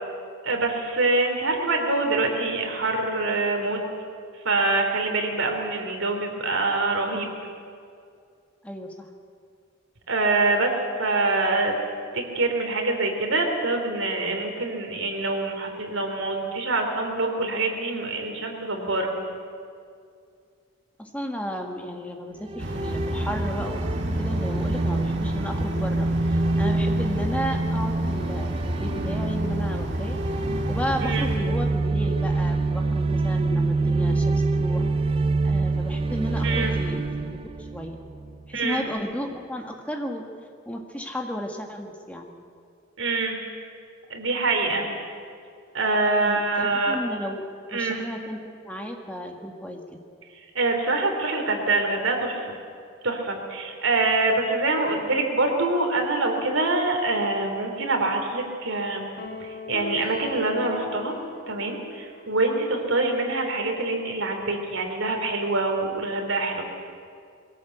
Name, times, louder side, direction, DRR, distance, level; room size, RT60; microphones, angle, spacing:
voice 1, 0.4-3.8 4.5-7.3 10.1-10.7 11.0-11.8 12.1-19.1 31.0-31.3 36.4-36.7 38.5-38.9 43.0-43.4 44.1-44.9 45.7-47.0 47.7-48.0 50.6-52.6 53.0-59.1 59.4-61.2 61.5-66.6, right 2 dB, 75° right, 3 dB, 3.4 m, -25 dB
voice 2, 8.6-9.1 21.0-30.2 30.7-34.9 35.4-38.0 38.5-40.2 40.6-42.3 46.2-47.4 47.7-50.0, equal, 5° left, 2 dB, 1.6 m, -33 dB
sound 1, 22.4-38.5, right 3 dB, 25° right, 0.5 m, -26 dB
sound 2, 22.6-31.4, equal, 55° right, 2.0 m, -30 dB
sound 3, 59.2-62.7, left 2 dB, 45° left, 1.6 m, -39 dB
21.5 x 16.5 x 8.0 m, 2.3 s
head